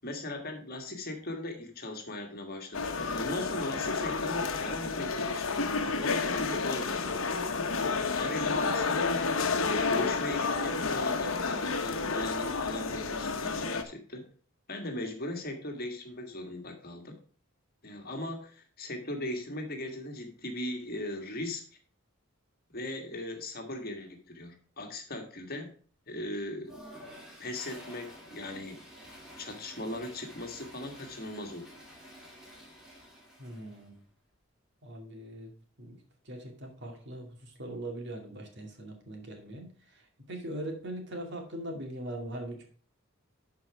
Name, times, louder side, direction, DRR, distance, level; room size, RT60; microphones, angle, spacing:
voice 1, 0.0-7.1 7.8-9.0 9.5-14.3 14.7-17.1 17.8-21.6 22.7-25.7 26.1-26.7 27.4-28.8 29.4-31.7, left 1 dB, 45° left, 4 dB, 1.7 m, -38 dB
sound 1, 2.7-13.8, left 4 dB, 75° left, 1.0 m, -30 dB
Toilet flush, 26.6-33.9, equal, ahead, 2.7 m, -50 dB
voice 2, 33.4-34.0 34.8-35.5 35.8-42.6, right 1 dB, 55° right, 2 dB, 2.3 m, -41 dB
11.5 x 4.7 x 4.6 m, 0.43 s
head